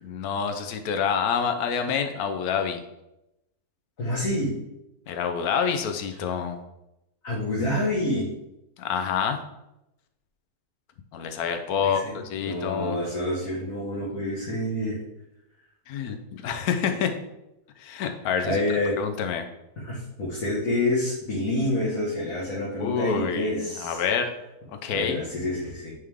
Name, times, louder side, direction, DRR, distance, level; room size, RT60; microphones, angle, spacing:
voice 1, 0.0-2.8 5.1-6.6 8.8-9.4 11.1-13.0 15.9-17.1 17.8-18.6 19.0-19.4 22.8-23.5 23.8-24.3 24.8-25.2, left 7 dB, 80° left, 6 dB, 1.2 m, -27 dB
voice 2, 4.0-4.6 7.2-8.3 11.8-12.2 12.5-15.0 18.4-19.0 19.8-24.0 24.9-25.9, left 1 dB, 65° left, -6 dB, 1.9 m, -27 dB
9.7 x 3.5 x 3.6 m, 0.89 s
omnidirectional pair, 1.6 m